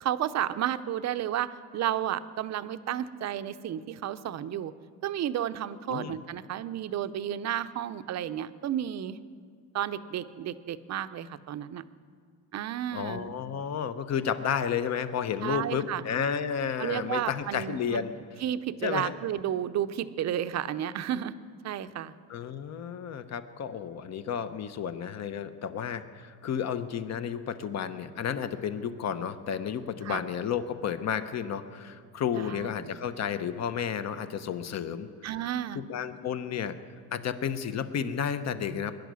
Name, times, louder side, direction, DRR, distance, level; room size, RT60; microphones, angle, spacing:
voice 1, 0.0-4.7 5.0-9.2 9.7-11.8 12.5-13.4 15.4-16.0 16.8-18.0 18.4-21.3 21.6-22.1 30.0-30.2 32.3-32.9 35.2-35.8, right 11 dB, 45° right, 12 dB, 0.7 m, -32 dB
voice 2, 12.9-18.1 18.8-19.1 22.3-35.1 35.7-36.7 37.1-38.9, left 8 dB, 40° left, 11 dB, 1.0 m, -32 dB
22.0 x 10.5 x 6.3 m, 2.1 s
cardioid pair, 115°, 39 cm